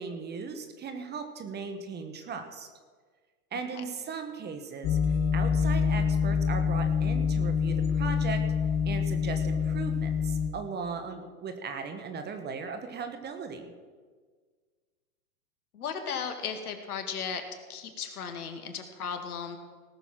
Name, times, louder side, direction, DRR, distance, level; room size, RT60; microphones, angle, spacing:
voice 1, 0.0-2.7 3.5-5.0 5.3-8.4 8.8-13.7, right 5 dB, 20° right, 7 dB, 1.3 m, -37 dB
sound 1, 4.8-10.5, left 6 dB, 35° left, 1.5 m, -26 dB
voice 2, 15.7-17.4 17.7-19.6, left 6 dB, 70° left, 7 dB, 2.0 m, -35 dB
18.5 x 6.9 x 6.0 m, 1.5 s
hypercardioid pair, 110°, 46 cm